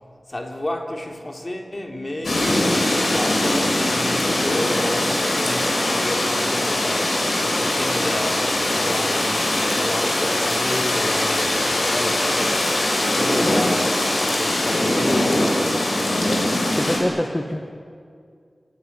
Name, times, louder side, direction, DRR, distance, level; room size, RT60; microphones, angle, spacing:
voice 1, 0.3-2.5 3.0-16.3, left 1 dB, 35° left, 3.6 m, -31 dB
sound 1, 2.2-17.0, left 1 dB, 75° left, 6.8 m, -21 dB
voice 2, 16.7-17.6, left 1 dB, 15° left, 1.8 m, -25 dB
30.0 x 18.5 x 9.6 m
wide cardioid pair, 75°, 0 cm